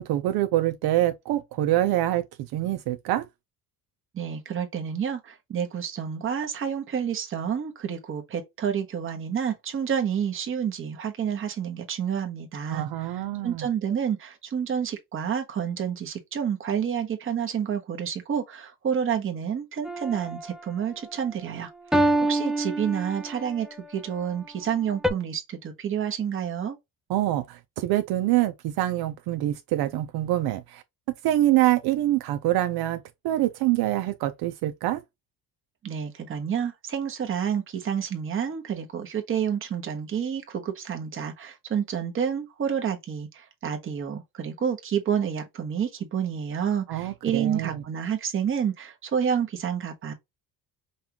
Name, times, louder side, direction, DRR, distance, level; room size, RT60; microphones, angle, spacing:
voice 1, 0.0-2.2 2.5-3.3 12.7-13.7 27.1-30.8 31.2-35.0 46.9-47.8, right 14 dB, 70° right, 0.6 m, -25 dB
voice 2, 4.1-26.8 35.8-50.1, right 8 dB, 30° right, 1.1 m, -29 dB
sound 1, 19.8-20.5 21.9-23.5 25.0-25.1, right 1 dB, ahead, 0.4 m, -25 dB
5.4 x 2.4 x 2.8 m
cardioid pair, 155°, 39 cm